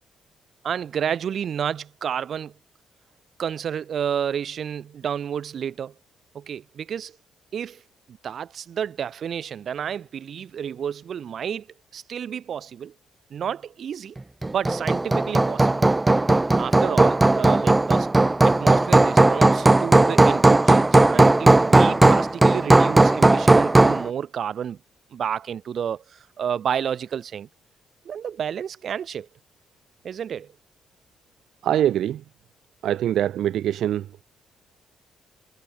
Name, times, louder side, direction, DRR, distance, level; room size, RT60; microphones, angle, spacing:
voice 1, 0.6-2.5 3.4-5.9 6.3-7.1 7.5-7.8 8.1-11.7 11.9-12.9 13.3-14.2 14.5-15.8 16.6-18.1 18.4-24.8 25.1-27.5 28.1-29.3 30.0-30.5, right 8 dB, 60° right, 5.3 m, -30 dB
Hammer, 14.4-24.1, right 2 dB, 15° right, 1.2 m, -17 dB
voice 2, 31.6-32.2 32.8-34.1, right 11 dB, 75° right, 0.6 m, -23 dB
cardioid pair, 90°, 0 cm